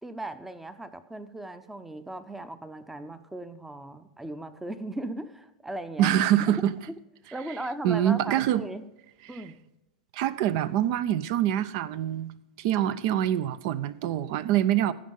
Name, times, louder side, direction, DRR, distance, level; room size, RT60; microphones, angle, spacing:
voice 1, 0.0-6.1 6.5-6.6 6.9-7.0 7.3-8.8 9.3-9.6, right 1 dB, 5° right, 12 dB, 0.7 m, -38 dB
voice 2, 6.0-6.7 7.8-8.6 10.1-12.3 12.6-14.9, right 11 dB, 45° right, 16 dB, 0.6 m, -25 dB
15.5 x 5.4 x 5.3 m, 0.95 s
figure-of-eight pair, 90°, 4 cm